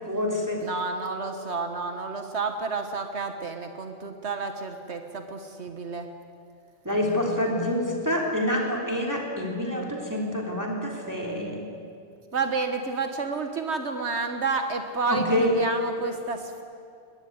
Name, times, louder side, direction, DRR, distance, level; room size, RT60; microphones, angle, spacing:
voice 1, 0.1-0.6 6.9-11.6 15.1-15.5, left 1 dB, 15° right, -1 dB, 3.5 m, -27 dB
voice 2, 0.6-6.1 12.3-16.6, right 4 dB, 80° right, 6 dB, 1.6 m, -30 dB
21.5 x 21.0 x 9.5 m, 2.5 s
omnidirectional pair, 1.1 m